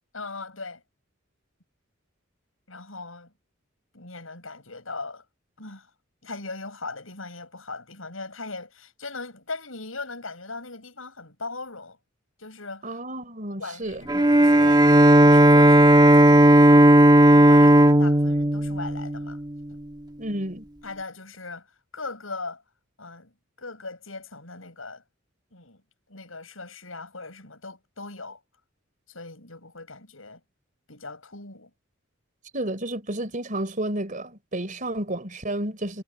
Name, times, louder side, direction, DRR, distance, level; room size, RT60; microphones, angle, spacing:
voice 1, 0.1-0.8 2.7-3.3 3.9-5.2 5.6-5.9 6.2-12.0 12.4-13.0 13.6-14.9 15.2-17.0 17.3-19.4 19.7-19.8 20.8-21.7 21.9-22.6 23.0-23.3 23.6-25.0 25.5-25.8 26.1-28.4 29.1-30.4 30.9-31.7, left 3 dB, 75° left, 8.0 m, -39 dB
voice 2, 12.8-14.1 20.2-20.6 32.5-36.0, right 1 dB, 40° right, 3.9 m, -31 dB
Bowed string instrument, 14.1-19.6, right 1 dB, 20° right, 1.3 m, -15 dB
head